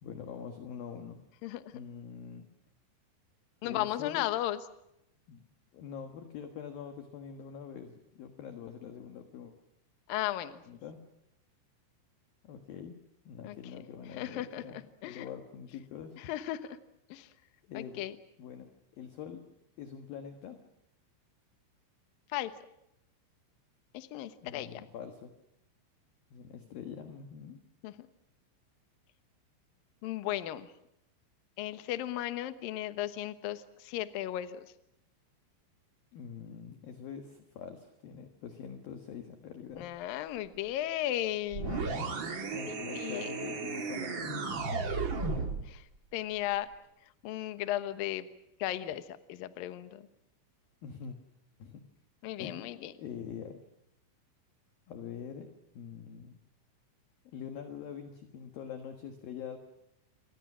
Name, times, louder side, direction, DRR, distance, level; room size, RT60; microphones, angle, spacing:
voice 1, 0.0-1.2 1.7-2.5 3.6-4.3 5.3-5.4 5.7-9.6 10.7-11.0 12.4-13.0 13.2-14.8 15.0-16.2 17.7-18.0 18.4-19.4 19.8-20.6 24.4-25.3 26.3-27.6 36.1-39.9 42.5-44.7 50.8-51.2 51.6-51.8 52.4-52.7 52.9-53.6 54.9-56.4 57.2-59.6, left 7 dB, 60° left, 6 dB, 2.6 m, -44 dB
voice 2, 1.4-1.7 3.6-4.6 10.1-10.6 13.4-13.6 14.1-15.3 16.2-16.8 17.1-17.3 17.7-18.2 22.3-22.5 23.9-24.8 27.8-28.1 30.0-30.7 31.6-34.7 39.8-42.0 42.3-43.3 44.7-44.8 45.1-45.3 45.6-46.7 47.2-48.3 48.6-50.1 52.2-52.9, left 13 dB, 80° left, 11 dB, 2.0 m, -36 dB
sound 1, 41.5-45.7, right 4 dB, 65° right, 1.1 m, -34 dB
28.5 x 23.5 x 6.2 m, 0.81 s
omnidirectional pair, 5.9 m